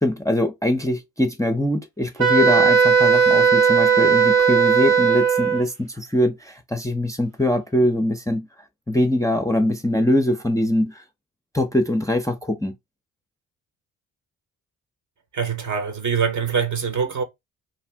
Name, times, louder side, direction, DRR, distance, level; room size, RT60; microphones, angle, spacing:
voice 1, 0.0-8.5 8.9-11.0 11.5-12.7, left 1 dB, 10° left, 0.6 m, -22 dB
Wind instrument woodwind instrument, 2.2-5.7, right 6 dB, 75° right, 0.9 m, -17 dB
voice 2, 15.3-17.2, right 6 dB, 45° right, 1.0 m, -24 dB
2.8 x 2.5 x 3.4 m
hypercardioid pair, 40°, 42 cm